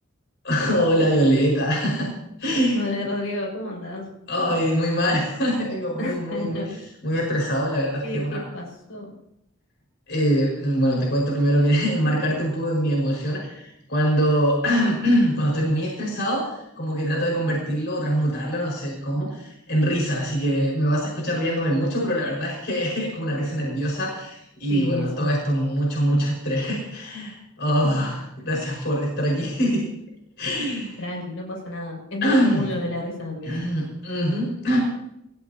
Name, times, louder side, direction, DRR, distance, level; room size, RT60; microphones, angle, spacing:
voice 1, 0.4-2.1 2.4-2.8 4.3-6.8 7.0-8.4 10.1-29.8 30.4-31.0 32.2-32.7 33.4-34.8, equal, 55° left, -2 dB, 5.3 m, -23 dB
voice 2, 2.7-4.1 6.0-6.8 7.6-9.1 24.7-25.3 31.0-33.5, left 2 dB, 80° left, -1 dB, 6.5 m, -31 dB
26.5 x 15.5 x 2.9 m, 0.82 s
head